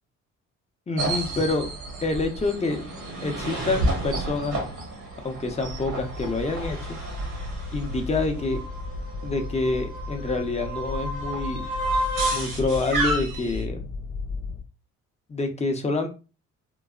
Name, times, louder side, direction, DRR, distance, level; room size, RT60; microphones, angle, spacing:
voice 1, 0.9-1.7 2.0-2.8 3.2-4.6 5.2-7.0 7.7-8.6 9.2-11.7 12.3-13.9 15.3-16.1, left 3 dB, 20° left, 4 dB, 0.6 m, -27 dB
sound 1, 1.0-13.6, right 2 dB, 80° right, 1.4 m, -31 dB
sound 2, 5.6-14.6, left 3 dB, 75° left, 0.7 m, -35 dB
3.8 x 2.1 x 2.3 m, 0.32 s
cardioid pair, 90°, 30 cm